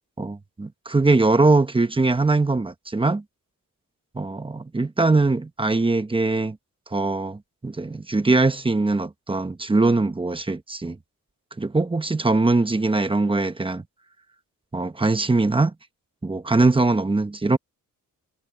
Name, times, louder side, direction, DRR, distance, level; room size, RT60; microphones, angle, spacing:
voice 1, 0.2-3.2 4.1-6.6 6.9-11.0 11.6-13.8 14.7-15.7 16.2-17.6, right 3 dB, 15° right, 1.0 m, -21 dB
wide cardioid pair, 155°, 34 cm